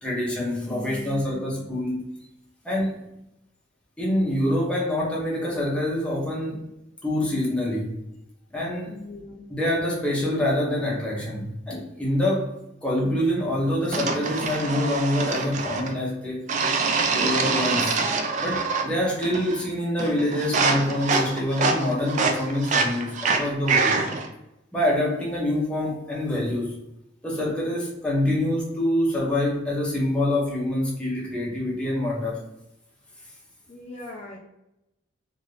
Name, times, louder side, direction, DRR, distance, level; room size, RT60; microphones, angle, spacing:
voice 1, 0.0-2.0 2.6-3.0 4.0-6.7 7.0-7.9 8.5-9.0 9.5-12.5 12.8-16.4 17.1-18.0 18.4-24.0 24.7-26.7 27.2-32.4, left 1 dB, 5° left, -4 dB, 0.7 m, -26 dB
voice 2, 0.6-1.6 8.9-9.5 33.7-34.4, left 2 dB, 35° left, -3 dB, 0.4 m, -39 dB
sound 1, 13.9-16.0 16.5-18.9 19.2-19.7 20.0-24.3, right 4 dB, 40° right, 0.3 m, -25 dB
2.6 x 2.4 x 3.2 m, 0.89 s
head